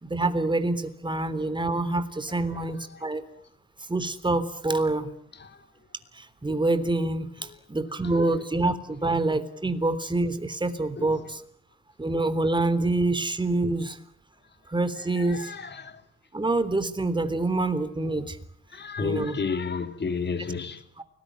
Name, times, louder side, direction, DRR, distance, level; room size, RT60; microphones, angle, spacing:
voice 1, 0.0-3.2 3.9-5.1 6.1-11.4 12.0-14.0 14.7-15.5 16.3-18.4 19.0-19.4 21.0-21.1, right 2 dB, 15° right, 3.5 m, -26 dB
voice 2, 2.3-3.0 5.3-5.7 7.4-7.5 7.9-8.7 9.0-9.2 11.0-11.3 13.8-13.9 14.9-15.9 18.7-20.8, left 5 dB, 35° left, 3.0 m, -34 dB
29.0 x 20.0 x 9.3 m
cardioid pair, 90°, 30 cm